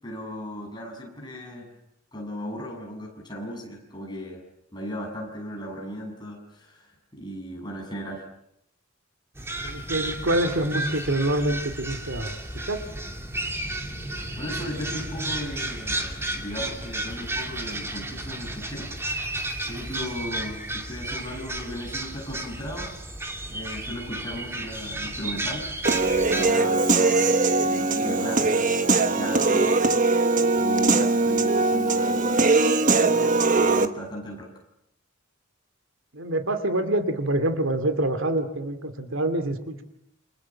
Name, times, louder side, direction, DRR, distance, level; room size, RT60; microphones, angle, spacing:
voice 1, 0.0-1.8 2.1-4.4 4.7-8.2 14.4-19.2 19.7-22.9 23.5-25.7 26.2-28.7 29.1-29.8 30.6-34.5, equal, 20° left, 1 dB, 7.1 m, -36 dB
sound 1, 9.4-26.5, right 1 dB, 10° right, 2.6 m, -33 dB
voice 2, 9.6-12.4 12.6-12.9 36.1-39.8, right 1 dB, 70° right, 8 dB, 2.6 m, -26 dB
Human voice / Piano, 25.9-33.9, right 3 dB, 40° right, 1.4 m, -21 dB
29.0 x 26.0 x 7.3 m, 0.78 s
head